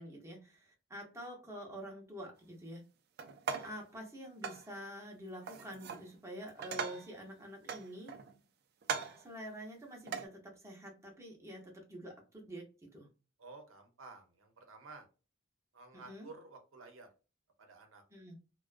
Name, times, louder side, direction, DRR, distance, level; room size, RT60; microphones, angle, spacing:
voice 1, 0.0-2.8 3.6-8.1 9.2-13.1 15.9-16.3 18.1-18.4, equal, 15° right, 0 dB, 0.7 m, -47 dB
sound 1, 3.2-3.8 4.4-4.7 5.5-6.1 6.4-7.2 7.7-8.4 8.8-9.3 10.1-10.3, right 6 dB, 55° right, 0.4 m, -40 dB
voice 2, 13.4-15.1 15.7-17.1 17.6-18.0, right 3 dB, 85° right, 4 dB, 0.7 m, -53 dB
2.4 x 2.2 x 2.4 m, 0.32 s
head